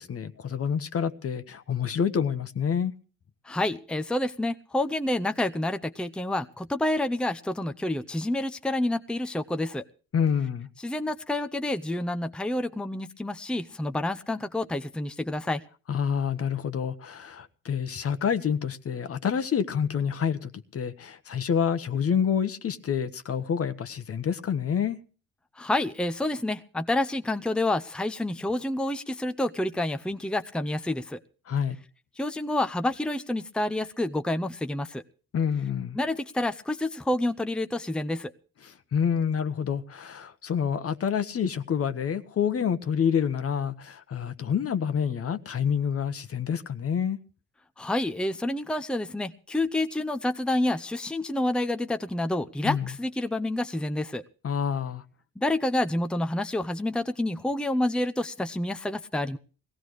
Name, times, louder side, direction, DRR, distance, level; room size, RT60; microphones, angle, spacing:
voice 1, 0.0-2.9 10.1-10.7 15.9-25.0 31.5-31.8 35.3-36.0 38.6-47.2 52.6-52.9 54.4-55.0, left 7 dB, 50° left, 1.2 m, -28 dB
voice 2, 3.4-9.8 10.8-15.6 25.6-31.2 32.2-35.0 35.9-38.3 47.8-54.2 55.4-59.4, left 1 dB, 5° left, 0.7 m, -28 dB
20.5 x 16.5 x 3.2 m
cardioid pair, 90°, 30 cm